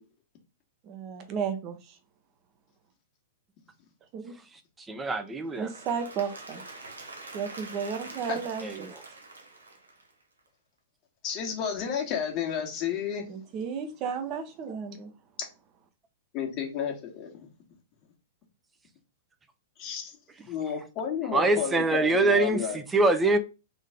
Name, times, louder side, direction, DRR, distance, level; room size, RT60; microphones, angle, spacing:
voice 1, 0.8-2.0 4.1-4.4 5.6-6.6 7.3-8.9 13.3-15.1, right 6 dB, 40° right, 1.0 m, -33 dB
voice 2, 4.9-5.7 8.6-8.9 21.3-23.4, right 2 dB, 15° right, 0.8 m, -24 dB
Applause / Crowd, 5.4-10.4, right 2 dB, 85° right, 1.0 m, -45 dB
voice 3, 11.2-13.3 16.3-17.3 19.8-20.1 20.5-22.8, left 7 dB, 40° left, 1.6 m, -31 dB
4.0 x 3.1 x 3.7 m
figure-of-eight pair, 105°, 0 cm